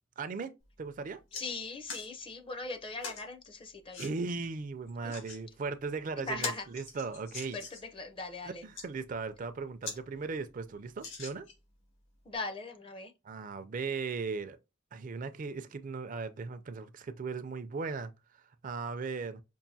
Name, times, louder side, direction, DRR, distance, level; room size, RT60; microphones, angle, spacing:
voice 1, 0.2-0.5 0.8-1.2 4.0-7.6 8.4-11.5 13.2-14.6 14.9-18.1 18.6-19.4, right 4 dB, 45° right, 0.4 m, -37 dB
sound 1, 0.6-0.7 1.1-1.4 1.9-2.1 3.0-3.2 3.9-4.1 4.9-5.4 5.9-6.0 6.3-7.9 8.5-8.9 9.4-9.5 9.8-10.0 10.3-10.4 11.0-11.7 12.3-12.4, left 4 dB, 85° left, 1.9 m, -42 dB
voice 2, 1.3-4.0 5.0-5.1 6.2-6.6 7.5-7.6 7.9-8.6 12.3-13.1, left 3 dB, 25° left, 0.5 m, -39 dB
5.4 x 2.5 x 2.7 m
head